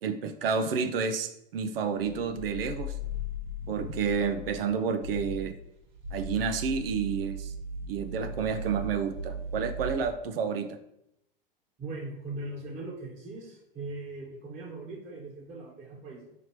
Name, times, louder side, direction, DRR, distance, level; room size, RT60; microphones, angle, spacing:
voice 1, 0.0-2.9 3.7-5.6 6.1-7.5 7.9-10.8, right 6 dB, 80° right, 8 dB, 0.5 m, -30 dB
sound 1, 2.1-4.6 5.0-5.5 5.9-10.2, equal, 55° right, 0.8 m, -37 dB
voice 2, 11.8-16.3, right 2 dB, 25° right, -6 dB, 1.4 m, -40 dB
5.1 x 2.9 x 3.0 m, 0.80 s
hypercardioid pair, 100°, 29 cm